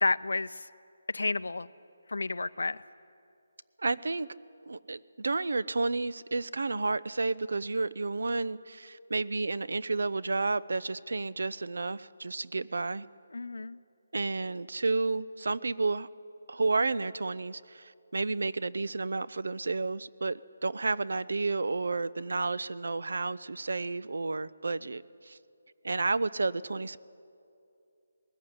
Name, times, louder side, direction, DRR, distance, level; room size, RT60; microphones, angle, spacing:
voice 1, 0.0-0.7 1.1-1.7 2.1-2.8 13.3-13.8, left 3 dB, 85° left, 14 dB, 0.5 m, -30 dB
voice 2, 3.8-4.3 4.7-13.1 14.1-16.1 16.5-25.4 25.8-27.0, right 3 dB, 70° right, 19 dB, 0.6 m, -31 dB
20.0 x 14.5 x 9.5 m, 2.5 s
hypercardioid pair, 175°, 0 cm